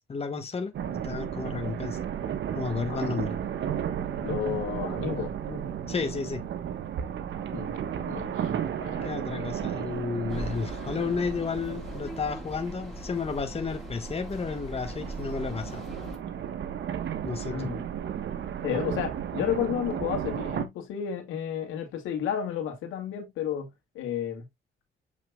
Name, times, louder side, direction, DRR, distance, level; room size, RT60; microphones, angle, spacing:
voice 1, 0.1-2.0 2.5-3.4 5.9-6.4 9.0-15.8 17.2-17.7, left 5 dB, 30° left, 1.6 m, -32 dB
sound 1, 0.7-20.7, right 9 dB, 70° right, 1.2 m, -34 dB
voice 2, 4.2-5.7 7.5-7.8 8.0-8.5 8.8-9.1 17.3-17.8 18.6-23.7 23.9-24.5, left 8 dB, 90° left, 2.2 m, -32 dB
sound 2, 10.3-16.2, equal, ahead, 5.3 m, -41 dB
7.4 x 5.6 x 2.3 m
cardioid pair, 90°, 20 cm